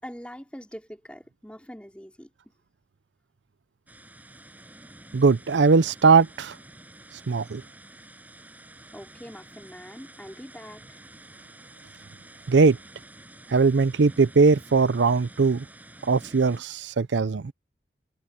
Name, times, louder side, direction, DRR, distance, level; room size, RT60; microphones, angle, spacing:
voice 1, 0.0-2.3 8.9-11.0, equal, 5° left, 3.9 m, -43 dB
sound 1, 3.9-16.6, right 1 dB, 10° right, 6.2 m, -49 dB
voice 2, 5.1-6.5 7.3-7.6 12.5-12.8 13.5-15.6 16.1-17.4, right 4 dB, 90° right, 0.5 m, -20 dB
head